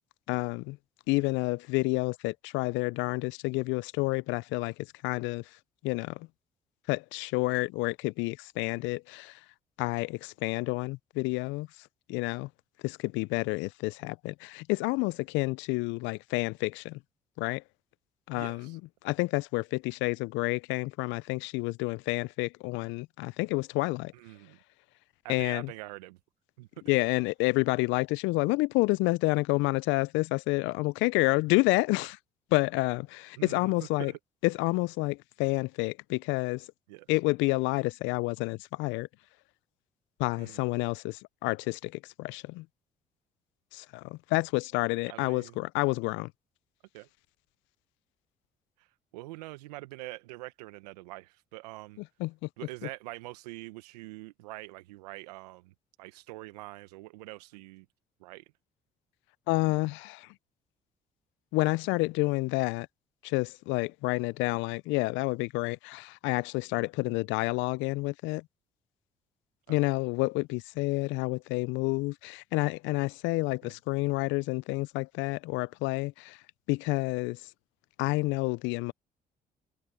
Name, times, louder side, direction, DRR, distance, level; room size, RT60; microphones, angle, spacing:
voice 1, 0.3-0.8 1.1-4.7 5.0-5.4 5.8-6.3 6.9-9.4 9.8-11.7 12.1-12.5 12.8-17.0 17.4-17.6 18.3-24.1 25.3-25.7 26.9-32.2 32.5-34.1 34.4-36.7 37.1-39.1 40.2-42.6 43.7-46.3 52.2-52.3 59.5-60.3 61.5-62.9 63.2-68.4 69.7-76.4 76.7-77.4 78.0-78.9, left 23 dB, 75° left, 0.6 m, -29 dB
voice 2, 18.3-18.8 24.1-24.6 25.2-26.2 26.6-26.7 33.4-34.2 36.9-37.2 40.4-40.6 45.1-45.6 46.9-47.1 48.8-52.0 52.6-57.9 58.2-58.5 67.0-67.2 69.7-69.9 73.6-73.7, right 20 dB, 85° right, 1.0 m, -45 dB
hypercardioid pair, 50°, 20 cm